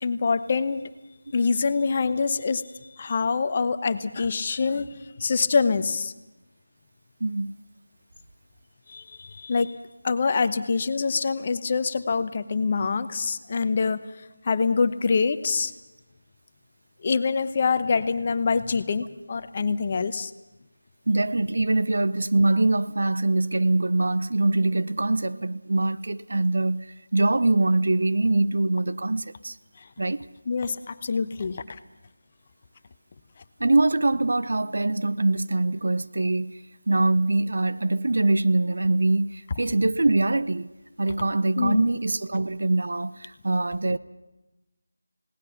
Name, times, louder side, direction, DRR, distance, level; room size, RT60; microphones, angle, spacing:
voice 1, 0.0-0.9 1.3-2.7 2.9-4.9 5.2-6.1 8.9-9.7 10.0-14.0 14.4-15.7 17.0-20.3 30.5-31.8 41.6-41.9, left 5 dB, 30° left, 0.9 m, -25 dB
voice 2, 7.2-7.5 21.1-26.9 27.1-29.6 30.0-30.3 33.6-36.5 36.9-40.7 41.0-44.0, right 2 dB, 55° right, 0.7 m, -23 dB
29.0 x 18.5 x 5.9 m
figure-of-eight pair, 165°, 0 cm